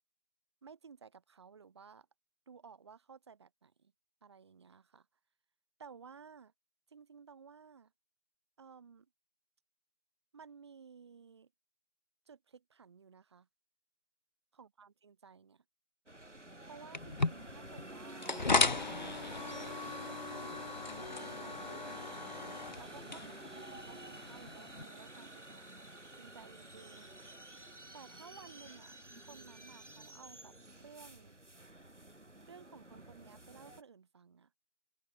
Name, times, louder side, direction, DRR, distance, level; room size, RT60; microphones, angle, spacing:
voice 1, 0.6-2.1 2.5-3.9 4.2-5.1 5.8-6.5 6.9-7.9 8.6-9.1 10.3-11.5 12.3-13.5 14.5-15.6 16.7-18.3 19.4-22.1 22.8-25.6 26.2-27.1 27.9-31.4 32.5-34.5, right 6 dB, 25° right, 7.1 m, -56 dB
sound 1, 16.1-33.8, right 1 dB, 85° right, 5.2 m, -50 dB
sound 2, 16.9-24.8, left 3 dB, 40° left, 3.1 m, -36 dB
open air
figure-of-eight pair, 165°, 35 cm